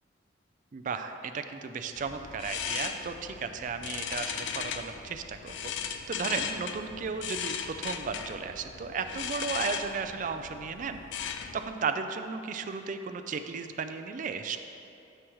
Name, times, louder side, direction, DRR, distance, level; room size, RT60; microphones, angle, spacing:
voice 1, 0.7-11.0 11.5-14.6, right 5 dB, 45° right, 8 dB, 0.4 m, -35 dB
sound 1, 1.9-11.7, left 7 dB, 70° left, 0.4 m, -37 dB
9.8 x 6.1 x 3.1 m, 2.9 s
head